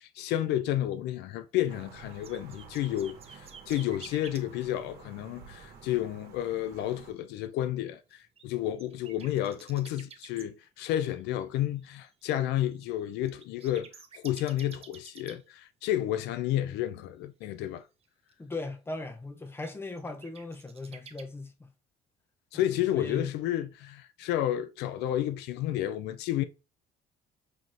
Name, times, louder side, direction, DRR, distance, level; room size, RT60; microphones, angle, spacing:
voice 1, 0.0-13.9 14.1-17.8 22.5-26.4, left 12 dB, 85° left, 0.4 m, -31 dB
sound 1, 1.6-4.4 8.1-10.4 10.8-15.4 16.2-16.4 18.0-18.5 19.6-21.2, right 6 dB, 35° right, 0.7 m, -50 dB
sound 2, 1.7-7.1, right 6 dB, 70° right, 1.1 m, -51 dB
voice 2, 18.4-21.7 22.9-23.3, left 2 dB, 15° left, 0.7 m, -38 dB
5.7 x 3.0 x 2.6 m
cardioid pair, 110°, 17 cm